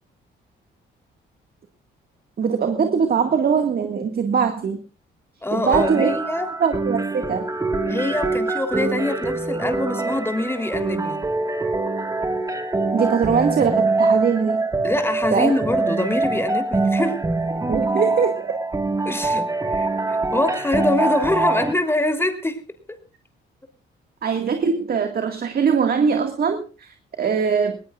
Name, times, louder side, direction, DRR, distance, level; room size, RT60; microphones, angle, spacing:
voice 1, 2.4-4.8 5.5-6.1 6.6-7.5 12.9-14.7 15.3-15.5 17.7-18.5 24.2-27.8, right 6 dB, 50° right, 6 dB, 2.0 m, -21 dB
voice 2, 5.4-6.5 7.9-11.3 14.8-17.2 19.1-22.6 22.9-23.0, left 2 dB, 10° left, 6 dB, 3.4 m, -24 dB
sound 1, 5.7-21.7, right 3 dB, 15° right, 1.8 m, -24 dB
20.0 x 19.5 x 2.5 m, 0.34 s
cardioid pair, 90°, 20 cm